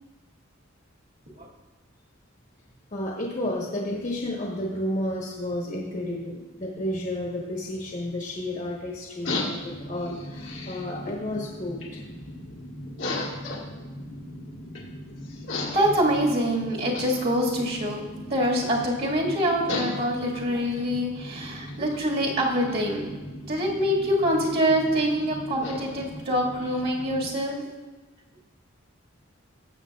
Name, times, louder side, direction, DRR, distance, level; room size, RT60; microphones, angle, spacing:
voice 1, 2.9-12.0, left 1 dB, 40° left, -2 dB, 1.2 m, -31 dB
sound 1, 9.2-27.3, left 2 dB, 70° left, 1.4 m, -37 dB
voice 2, 15.7-23.1 23.4-27.6, equal, 50° right, -3 dB, 1.9 m, -25 dB
18.0 x 6.9 x 2.4 m, 1.3 s
head